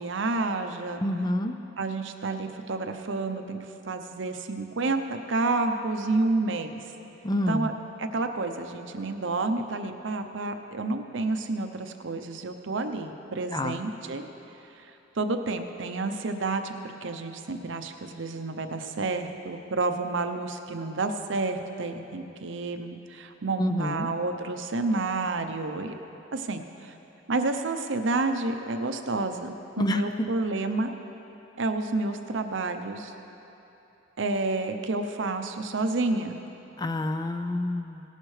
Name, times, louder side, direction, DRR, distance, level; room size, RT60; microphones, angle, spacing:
voice 1, 0.0-1.0 1.8-3.6 3.9-6.8 7.5-7.7 8.0-14.2 14.8-14.9 15.1-16.7 17.0-25.9 26.3-26.9 27.3-30.9 31.6-33.1 34.2-36.4, right 3 dB, 70° right, 7 dB, 0.7 m, -29 dB
voice 2, 1.0-1.5 7.2-7.7 13.5-13.8 23.6-24.1 29.8-30.3 36.8-38.0, left 1 dB, 20° left, 7 dB, 0.4 m, -28 dB
18.0 x 11.0 x 3.3 m, 2.9 s
head